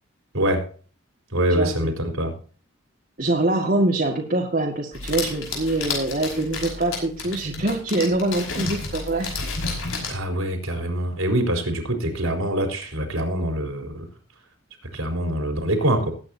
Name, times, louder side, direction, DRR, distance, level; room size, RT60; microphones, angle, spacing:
voice 1, 0.3-0.7 1.3-2.3 10.1-14.1 14.9-16.1, right 1 dB, 85° right, 4 dB, 4.1 m, -24 dB
voice 2, 1.5-1.9 3.2-9.3, right 2 dB, 45° right, -2 dB, 2.0 m, -24 dB
sound 1, 4.9-10.2, left 3 dB, 80° left, 5.6 m, -31 dB
20.0 x 9.5 x 2.8 m, 0.39 s
head